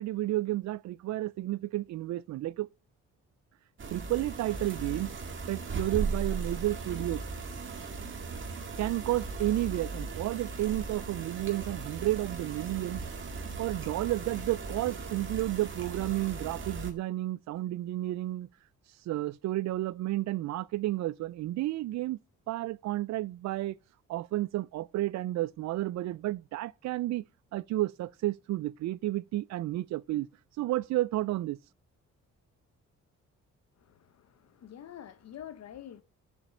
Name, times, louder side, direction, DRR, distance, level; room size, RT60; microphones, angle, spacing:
voice 1, 0.0-2.7 3.9-5.1 5.5-7.2 8.8-13.0 13.6-18.5 19.1-22.2 22.5-23.7 24.1-27.2 27.5-30.3 30.6-31.6, right 15 dB, 65° right, 0.4 m, -31 dB
sound 1, 3.8-16.9, right 4 dB, 40° right, 1.9 m, -38 dB
voice 2, 33.8-36.0, left 10 dB, 60° left, 0.9 m, -47 dB
7.0 x 5.6 x 7.1 m
cardioid pair, 90°, 30 cm